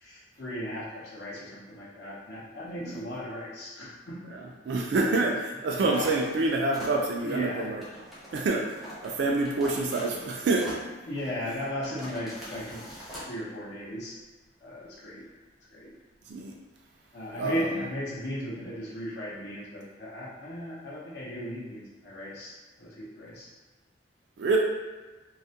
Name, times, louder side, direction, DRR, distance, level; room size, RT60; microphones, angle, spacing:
voice 1, 0.0-4.3 4.9-5.2 5.7-6.1 7.2-7.7 11.1-14.2 14.6-15.3 15.7-15.9 17.1-22.5 22.8-23.5, left 1 dB, 65° left, -7 dB, 0.6 m, -36 dB
voice 2, 4.3-7.8 8.3-10.7 16.3-16.5 17.4-17.7 24.4-24.6, right 3 dB, 70° right, -1 dB, 0.3 m, -27 dB
sound 1, 5.9-13.3, equal, ahead, 0.5 m, -43 dB
2.3 x 2.1 x 2.6 m, 1.2 s
head